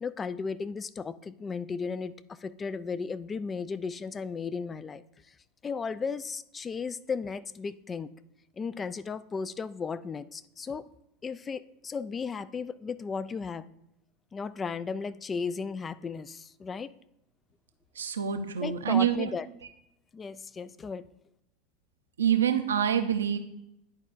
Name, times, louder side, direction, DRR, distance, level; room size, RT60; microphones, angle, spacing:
voice 1, 0.0-5.0 5.3-5.4 5.6-8.1 8.6-10.9 11.2-13.6 14.3-16.9 18.6-19.4 20.1-21.1, left 5 dB, 25° left, 17 dB, 0.3 m, -35 dB
voice 2, 17.9-19.3 22.2-23.4, right 9 dB, 90° right, 8 dB, 0.6 m, -26 dB
10.5 x 4.5 x 2.5 m, 0.81 s
hypercardioid pair, 95°, 0 cm